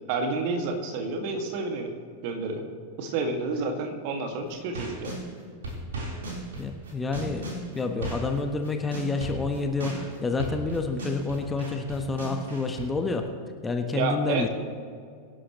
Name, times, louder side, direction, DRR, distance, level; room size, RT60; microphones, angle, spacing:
voice 1, 0.1-1.9 2.2-2.7 3.0-5.1 13.9-14.5, right 3 dB, 45° right, 4 dB, 2.0 m, -29 dB
sound 1, 4.5-5.2 5.6-8.4 8.6-12.8, right 2 dB, 65° right, 4.1 m, -35 dB
voice 2, 6.6-13.3 13.6-14.5, left 3 dB, 15° left, 5 dB, 1.2 m, -29 dB
24.0 x 11.5 x 3.2 m, 2.1 s
figure-of-eight pair, 90°, 0 cm